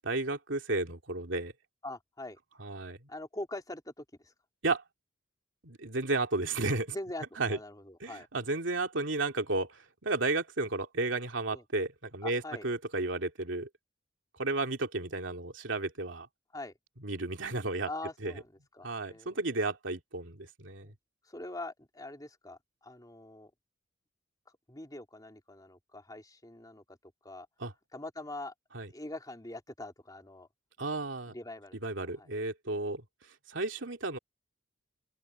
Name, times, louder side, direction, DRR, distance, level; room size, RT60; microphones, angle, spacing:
voice 1, 0.0-1.5 2.6-3.0 4.6-4.8 5.6-6.9 7.4-7.6 8.0-13.7 14.4-16.3 17.0-17.9 18.2-18.3 18.8-20.9 27.6-27.7 28.7-28.9 30.8-31.3 31.8-33.0 33.5-34.2, right 2 dB, 75° right, 2.6 m, -33 dB
voice 2, 1.8-2.4 3.1-4.3 6.9-8.3 11.5-11.6 12.2-12.7 16.5-16.7 17.9-19.4 20.8-20.9 21.2-23.5 24.7-27.5 27.9-28.5 28.9-30.5 31.3-31.8 32.1-32.3 32.7-32.8, left 2 dB, 20° left, 3.2 m, -43 dB
open air
head